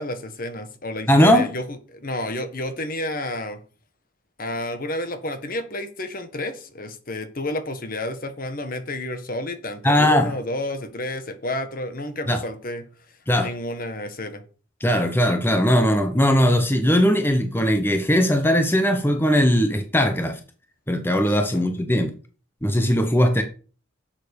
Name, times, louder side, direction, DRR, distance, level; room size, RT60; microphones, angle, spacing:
voice 1, 0.0-3.6 4.4-12.8 13.4-14.4 21.5-21.6, left 1 dB, 45° left, 1.6 m, -30 dB
voice 2, 1.1-1.5 9.8-10.3 12.3-12.4 13.3-13.5 14.8-20.4 20.9-22.1 22.6-23.4, equal, 10° left, 1.0 m, -19 dB
11.5 x 7.5 x 5.4 m
head